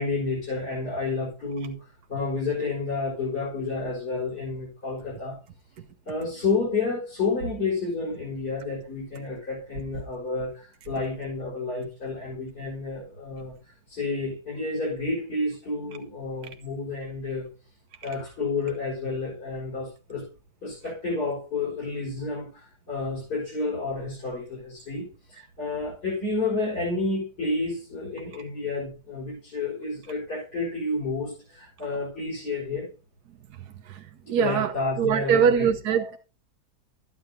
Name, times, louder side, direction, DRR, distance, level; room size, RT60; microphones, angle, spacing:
voice 1, 0.0-5.4 6.1-17.5 18.0-20.3 20.6-32.9 34.4-35.7 36.0-36.1, left 3 dB, 85° left, 5.4 m, -30 dB
voice 2, 33.8-34.7 35.0-36.2, right 7 dB, 80° right, 1.5 m, -23 dB
13.0 x 9.6 x 2.8 m
omnidirectional pair, 1.7 m